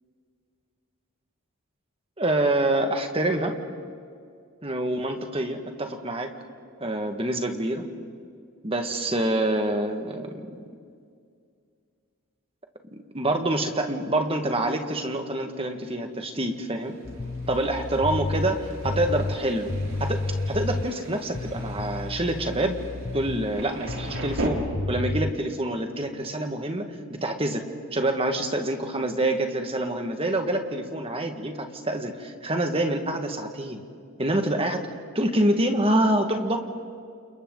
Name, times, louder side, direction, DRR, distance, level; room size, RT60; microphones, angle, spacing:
voice 1, 2.2-3.5 4.6-6.3 6.8-7.9 8.6-10.4 12.9-17.0 17.5-19.7 20.0-22.8 23.1-27.6 27.9-33.8 34.2-34.9 35.2-36.6, right 1 dB, 25° right, 5 dB, 1.8 m, -26 dB
Thunder, 16.4-24.5, right 2 dB, 65° right, 3.7 m, -40 dB
sound 1, 17.0-21.0 21.3-23.6 23.9-25.3, left 2 dB, 35° left, 0.6 m, -31 dB
29.5 x 29.0 x 4.0 m, 2.2 s
head